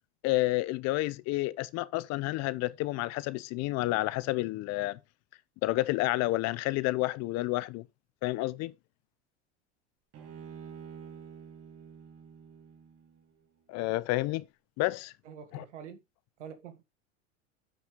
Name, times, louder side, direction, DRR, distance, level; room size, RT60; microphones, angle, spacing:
voice 1, 0.2-5.0 5.6-7.8 8.2-8.7 13.7-14.4 14.8-15.1 15.5-15.6, left 19 dB, 50° left, 0.7 m, -30 dB
Bowed string instrument, 10.1-13.4, right 7 dB, 45° right, 2.5 m, -48 dB
voice 2, 15.2-16.0 16.4-16.8, right 7 dB, 80° right, 1.9 m, -46 dB
9.4 x 5.8 x 3.6 m
hypercardioid pair, 95°, 35 cm